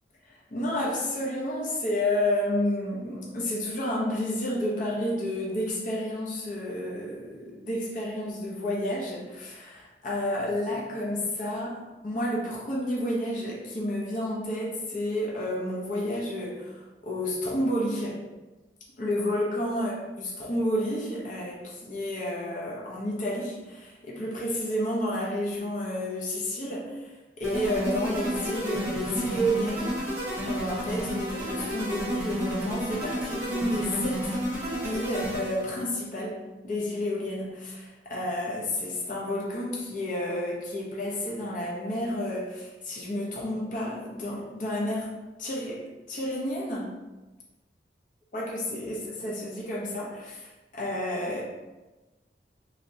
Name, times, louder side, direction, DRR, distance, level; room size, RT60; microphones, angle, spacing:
voice 1, 0.5-18.2 19.0-27.0 27.4-30.0 30.4-34.3 34.8-45.1 45.4-45.8 46.1-47.0 48.3-50.4 50.8-51.4, left 1 dB, 45° left, -4 dB, 0.6 m, -30 dB
sound 1, 27.4-35.8, equal, 10° right, 1.3 m, -31 dB
3.1 x 2.8 x 2.6 m, 1.1 s
head